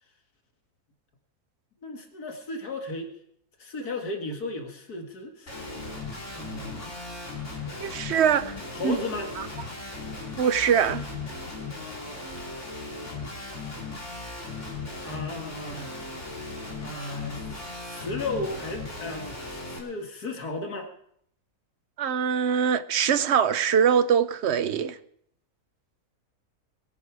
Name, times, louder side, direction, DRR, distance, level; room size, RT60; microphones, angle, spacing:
voice 1, 1.8-3.1 3.6-5.8 6.3-7.1 8.7-9.3 15.0-15.9 16.8-17.4 17.8-20.9, left 2 dB, 80° left, 2.5 m, -35 dB
Guitar, 5.5-19.8, left 3 dB, 50° left, 3.8 m, -37 dB
voice 2, 7.8-8.5 8.8-9.0 9.4-9.5 10.4-11.1 22.0-25.0, right 7 dB, 55° right, 0.9 m, -23 dB
22.5 x 11.0 x 4.8 m
omnidirectional pair, 1.6 m